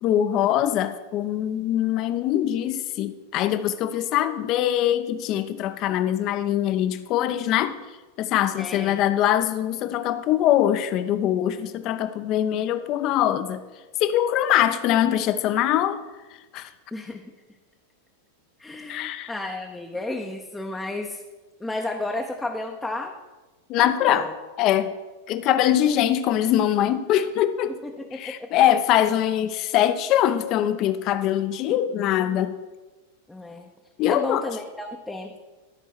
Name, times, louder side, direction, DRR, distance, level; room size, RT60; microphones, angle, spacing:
voice 1, 0.0-13.6 14.0-16.0 16.3-16.7 18.9-19.3 23.7-24.3 24.6-25.0 25.3-27.7 28.1-32.6 34.0-34.4, left 11 dB, 40° left, 11 dB, 0.6 m, -23 dB
voice 2, 8.4-9.0 16.9-17.3 18.6-21.2 21.6-23.1 23.7-24.3 27.6-28.5 33.3-33.7 34.1-35.4, left 2 dB, 5° left, 1 dB, 0.7 m, -33 dB
13.5 x 4.5 x 6.1 m, 1.2 s
figure-of-eight pair, 90°, 0 cm